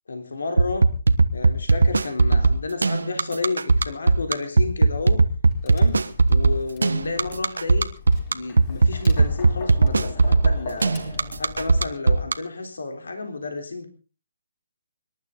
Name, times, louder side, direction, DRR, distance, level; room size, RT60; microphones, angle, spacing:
voice 1, 0.1-0.9 1.3-5.2 5.6-7.9 8.3-13.9, left 3 dB, 70° left, 6 dB, 3.5 m, -31 dB
sound 1, 0.6-12.3, right 3 dB, 75° right, 1.3 m, -18 dB
Tap, 5.4-11.7, left 3 dB, 30° left, 4.4 m, -39 dB
25.5 x 12.0 x 3.9 m, 0.36 s
figure-of-eight pair, 140°, 0 cm